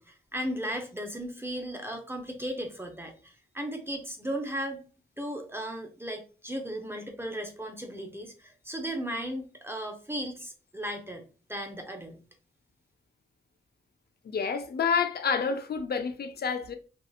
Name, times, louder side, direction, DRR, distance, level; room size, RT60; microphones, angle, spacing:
voice 1, 0.0-4.8 5.2-12.2, equal, 10° right, 0.6 m, -36 dB
voice 2, 14.2-16.7, left 6 dB, 60° left, 0.5 m, -28 dB
2.8 x 2.3 x 2.3 m
cardioid pair, 55°, 19 cm